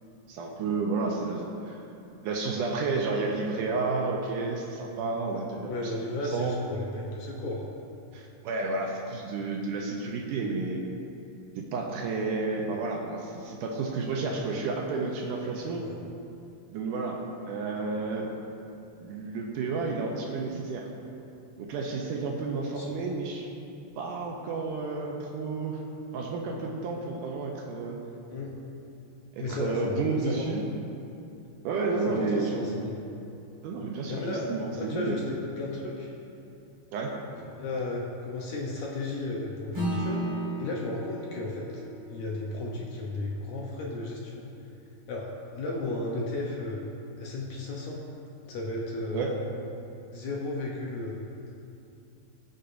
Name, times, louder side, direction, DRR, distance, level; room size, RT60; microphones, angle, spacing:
voice 1, 0.3-1.8 2.2-5.9 6.3-6.6 8.1-10.8 11.6-15.9 16.7-18.3 19.0-20.9 21.6-23.5 24.0-25.8 26.1-28.0 29.4-30.7 31.6-32.8 33.6-35.2 36.9-37.1 49.1-49.4, right 3 dB, 75° right, 0 dB, 2.1 m, -31 dB
voice 2, 5.7-7.6 15.8-15.9 22.7-22.9 28.3-28.6 29.4-30.7 32.1-33.1 34.1-36.1 37.5-40.2 40.6-41.8 42.1-44.5 45.1-46.8 47.2-48.0 48.5-49.3 50.1-51.2, left 2 dB, 70° left, -3 dB, 1.9 m, -34 dB
Acoustic guitar / Strum, 39.7-44.5, right 1 dB, 40° right, 0.4 m, -36 dB
19.5 x 6.8 x 2.6 m, 2.7 s
omnidirectional pair, 4.1 m